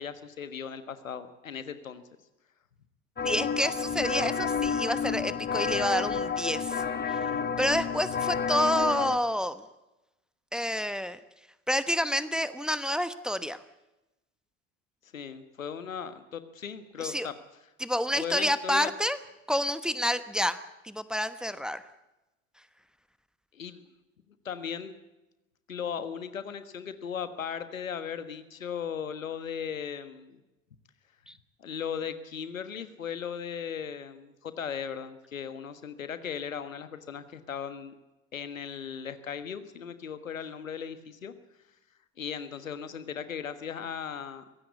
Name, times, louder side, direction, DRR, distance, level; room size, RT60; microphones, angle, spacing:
voice 1, 0.0-2.0 15.1-17.3 18.2-18.9 23.5-23.8 24.4-24.9 25.7-30.4 31.6-37.9 38.3-41.3 42.2-44.4, left 7 dB, 85° left, 12 dB, 1.5 m, -37 dB
sound 1, 3.2-9.2, left 6 dB, 25° left, 1.8 m, -30 dB
voice 2, 3.2-6.8 7.1-7.2 7.6-9.6 10.5-11.2 11.7-13.6 17.0-17.3 17.8-19.2 19.5-21.8 31.3-31.4, equal, ahead, 13 dB, 1.1 m, -29 dB
23.5 x 16.5 x 8.2 m, 0.99 s
figure-of-eight pair, 65°, 39 cm